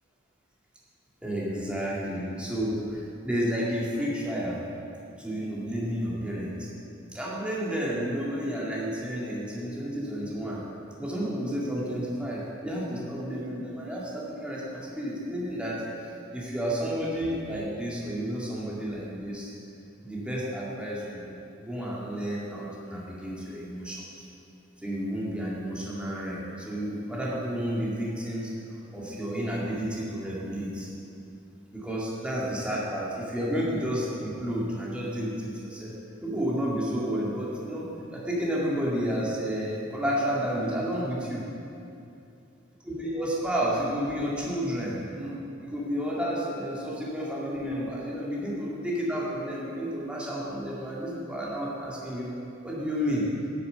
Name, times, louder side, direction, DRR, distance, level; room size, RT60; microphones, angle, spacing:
voice 1, 1.2-4.6 5.2-6.7 7.1-10.6 11.0-19.5 20.0-24.2 24.8-30.9 31.7-36.0 36.2-41.4 42.8-45.4 45.6-53.3, equal, 5° right, -6 dB, 2.0 m, -31 dB
8.9 x 7.2 x 6.8 m, 2.6 s
head